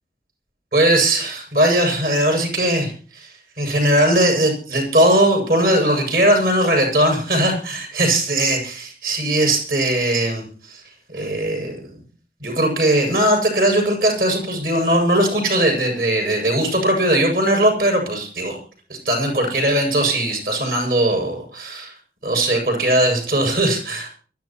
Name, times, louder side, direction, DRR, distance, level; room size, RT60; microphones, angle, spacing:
voice 1, 0.7-10.8 11.1-12.0 12.4-18.6 18.9-21.9 22.2-24.1, right 1 dB, 55° right, 2 dB, 7.7 m, -19 dB
24.0 x 14.5 x 3.1 m, 0.42 s
head